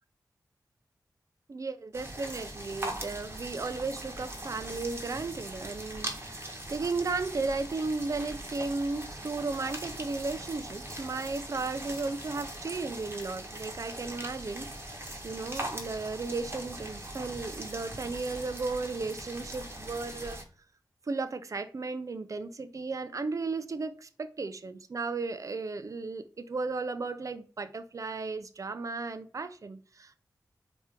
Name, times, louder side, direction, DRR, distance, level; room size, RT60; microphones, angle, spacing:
voice 1, 1.5-14.7 15.2-20.4 21.1-30.1, right 3 dB, 50° right, 0.5 m, -35 dB
sound 1, 1.9-20.4, right 1 dB, 35° right, 1.4 m, -41 dB
4.5 x 3.0 x 3.6 m
cardioid pair, 55°, 7 cm